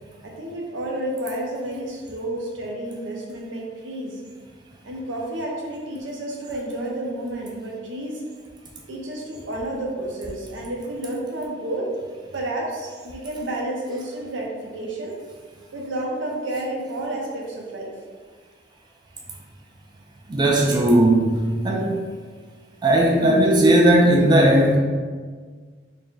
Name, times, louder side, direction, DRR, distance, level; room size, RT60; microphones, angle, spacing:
voice 1, 0.2-4.2 4.8-8.2 8.9-11.9 12.3-15.2 15.7-17.9, right 1 dB, 80° right, -1 dB, 0.7 m, -30 dB
voice 2, 20.3-22.0 22.8-24.8, right 1 dB, 25° right, -1 dB, 0.4 m, -17 dB
3.7 x 2.1 x 3.9 m, 1.5 s
head